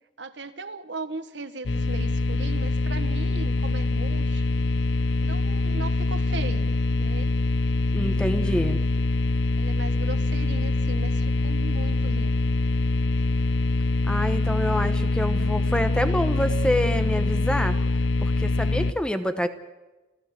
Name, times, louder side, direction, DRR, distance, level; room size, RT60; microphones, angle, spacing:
voice 1, 0.2-4.7 5.2-7.3 8.5-8.8 9.6-12.6, right 3 dB, 75° right, 10 dB, 1.5 m, -38 dB
sound 1, 1.7-18.9, left 2 dB, 80° left, 0.7 m, -24 dB
voice 2, 7.9-8.8 14.1-17.8 18.2-19.5, equal, 5° left, 10 dB, 1.0 m, -27 dB
28.5 x 15.5 x 7.7 m, 1.2 s
head